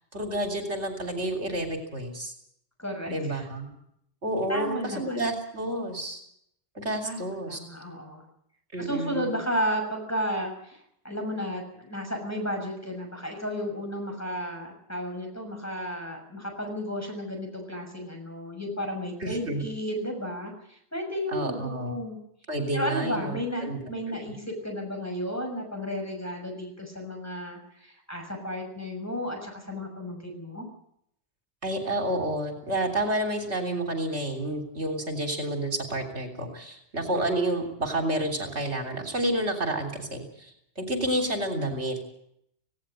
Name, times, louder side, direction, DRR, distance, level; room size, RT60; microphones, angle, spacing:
voice 1, 0.1-2.3 3.1-3.7 4.2-6.2 6.8-7.6 8.7-9.3 19.2-19.7 21.3-21.9 22.5-23.8 24.1-24.2 31.6-40.5 40.8-42.0, right 1 dB, 75° right, 4 dB, 3.7 m, -30 dB
voice 2, 2.8-3.5 4.5-5.2 7.0-7.2 7.5-8.2 8.8-10.8 11.0-22.2 22.7-30.7, equal, 15° left, 2 dB, 6.4 m, -33 dB
18.5 x 17.5 x 9.0 m, 0.73 s
omnidirectional pair, 1.2 m